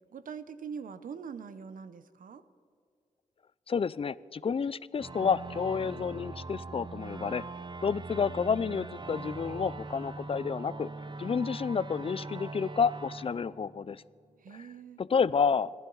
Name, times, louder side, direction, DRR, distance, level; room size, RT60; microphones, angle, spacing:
voice 1, 0.1-2.4 14.4-15.0, right 6 dB, 80° right, 12 dB, 0.8 m, -43 dB
voice 2, 3.7-7.4 7.8-10.9 11.2-14.0 15.0-15.7, left 6 dB, 40° left, 19 dB, 0.4 m, -30 dB
sound 1, 5.0-14.3, right 3 dB, 35° right, 0.8 m, -42 dB
26.0 x 11.5 x 4.0 m, 2.3 s
cardioid pair, 50°, 14 cm